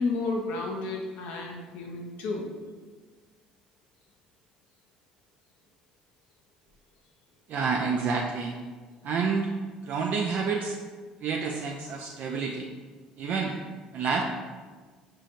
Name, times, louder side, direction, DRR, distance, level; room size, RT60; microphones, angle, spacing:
voice 1, 0.0-2.5, left 3 dB, 70° left, 0 dB, 0.5 m, -31 dB
voice 2, 7.5-8.5 9.0-9.5 9.8-10.8 11.2-12.7 13.2-13.6 13.9-14.2, right 5 dB, 55° right, 0 dB, 0.3 m, -28 dB
5.0 x 2.7 x 2.5 m, 1.4 s
hypercardioid pair, 60°, 3 cm